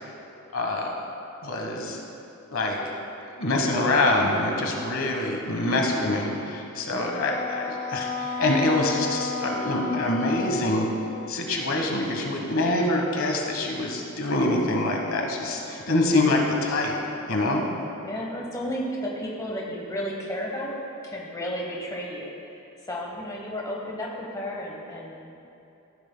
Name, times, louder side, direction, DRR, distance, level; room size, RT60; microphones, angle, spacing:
voice 1, 0.5-0.9 1.4-2.0 2.5-2.8 3.2-10.9 11.3-16.9 17.3-17.6, left 2 dB, 60° left, 1 dB, 1.3 m, -25 dB
Wind instrument woodwind instrument, 7.1-11.6, left 4 dB, 35° left, 0.4 m, -33 dB
voice 2, 18.0-20.8 21.0-22.6 22.9-25.4, equal, 15° left, -2 dB, 1.0 m, -33 dB
14.0 x 10.5 x 2.2 m, 2.9 s
head